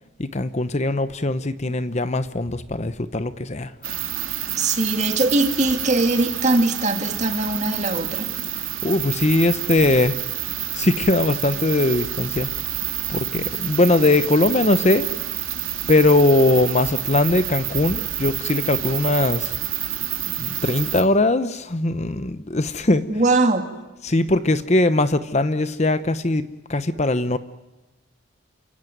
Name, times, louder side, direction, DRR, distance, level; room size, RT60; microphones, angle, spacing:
voice 1, 0.2-3.9 8.8-10.2 10.7-12.5 13.1-15.1 15.9-19.5 20.4-23.0 24.0-27.4, left 2 dB, 30° left, 12 dB, 0.8 m, -20 dB
sound 1, 3.8-21.0, right 12 dB, 70° right, 2.8 m, -28 dB
voice 2, 4.6-8.6 23.1-23.6, right 2 dB, 35° right, 6 dB, 2.5 m, -21 dB
29.0 x 17.0 x 9.4 m, 1.1 s
head